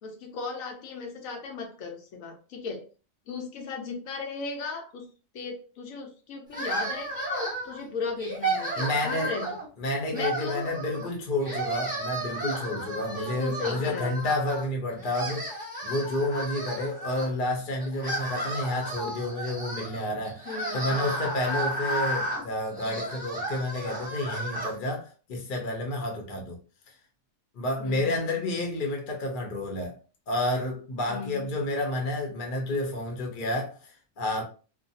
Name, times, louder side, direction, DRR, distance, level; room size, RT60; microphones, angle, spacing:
voice 1, 0.0-2.9 3.3-5.1 5.3-9.6 10.1-10.7 11.0-11.1 13.1-14.1 20.5-21.1 27.8-28.4 31.1-31.6, left 4 dB, 80° left, 1.0 m, -36 dB
sound 1, 6.5-7.8 8.2-9.7 10.1-11.1 11.4-14.7 15.0-17.3 17.8-24.7, right 1 dB, 5° right, 0.8 m, -33 dB
voice 2, 8.8-9.3 9.8-26.6 27.5-30.0 30.3-34.4, left 1 dB, 45° left, 0.8 m, -30 dB
2.5 x 2.2 x 2.7 m
omnidirectional pair, 1.4 m